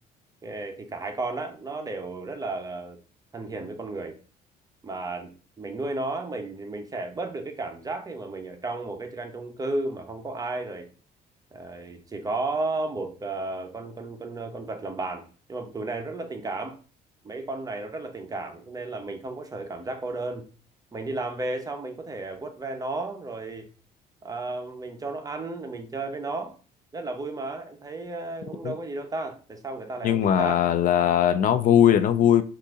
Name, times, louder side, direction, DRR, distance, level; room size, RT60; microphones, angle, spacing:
voice 1, 0.4-3.0 3.3-4.2 4.8-5.3 5.6-10.9 11.5-16.8 17.2-20.5 20.9-23.7 24.2-26.5 26.9-30.6, right 2 dB, 20° right, 0.8 m, -33 dB
voice 2, 30.0-32.4, left 10 dB, 55° left, 0.4 m, -20 dB
5.4 x 2.6 x 3.7 m
cardioid pair, 110°, 17 cm